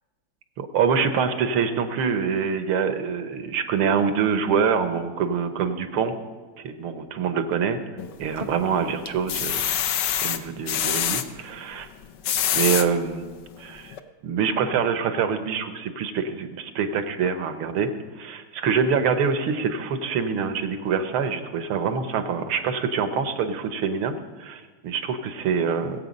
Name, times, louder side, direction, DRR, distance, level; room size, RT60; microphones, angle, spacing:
voice 1, 0.6-6.1 6.6-7.8 8.2-9.6 10.2-11.9 12.5-13.3 13.6-14.0 14.2-17.9 18.2-24.1 24.4-26.0, right 6 dB, 80° right, 8 dB, 1.9 m, -25 dB
sound 1, 8.0-8.6 9.1-11.2 12.0-12.9 13.5-13.6 13.9-14.0, left 9 dB, 65° left, 1.2 m, -25 dB
20.0 x 8.0 x 5.3 m, 1.4 s
omnidirectional pair, 2.3 m